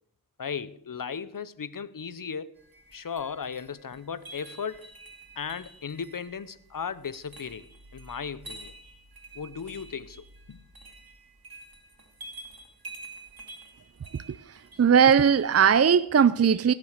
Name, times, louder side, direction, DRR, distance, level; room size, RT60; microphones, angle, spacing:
voice 1, 0.4-2.5 2.9-4.9 5.4-7.7 7.9-8.7 9.3-10.6, left 6 dB, 65° left, 0.7 m, -36 dB
sound 1, 2.6-15.6, right 2 dB, 80° right, 2.3 m, -48 dB
voice 2, 14.1-16.7, right 7 dB, 45° right, 0.5 m, -20 dB
16.5 x 7.6 x 6.6 m
wide cardioid pair, 40°, 35 cm